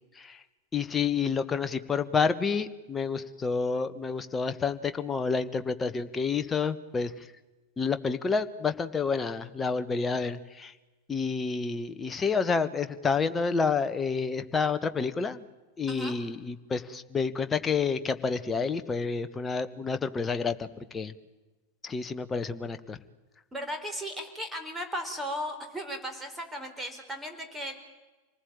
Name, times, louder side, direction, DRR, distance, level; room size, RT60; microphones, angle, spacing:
voice 1, 0.7-7.3 7.8-10.7 11.1-15.4 15.8-20.7 20.9-21.1 21.8-23.0, left 5 dB, 15° left, 10 dB, 1.4 m, -29 dB
voice 2, 23.5-27.7, equal, 10° right, 5 dB, 4.6 m, -36 dB
27.0 x 19.5 x 9.0 m, 1.2 s
figure-of-eight pair, 90°, 0 cm